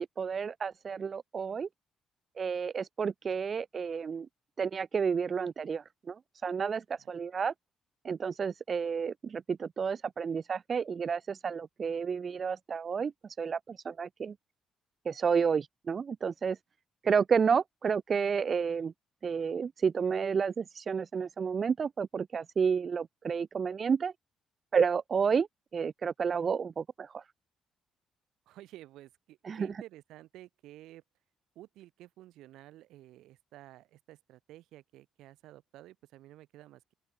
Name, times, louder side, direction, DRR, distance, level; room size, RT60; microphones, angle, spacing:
voice 1, 0.0-1.7 2.4-4.3 4.6-7.5 8.0-13.1 13.4-14.3 15.1-16.6 17.0-18.9 19.2-24.1 24.7-25.5 25.7-27.2 29.4-29.7, right 6 dB, 45° right, 0.5 m, -31 dB
voice 2, 28.5-31.0 31.6-36.9, right 15 dB, 90° right, 7.3 m, -52 dB
open air
cardioid pair, 90°, 0 cm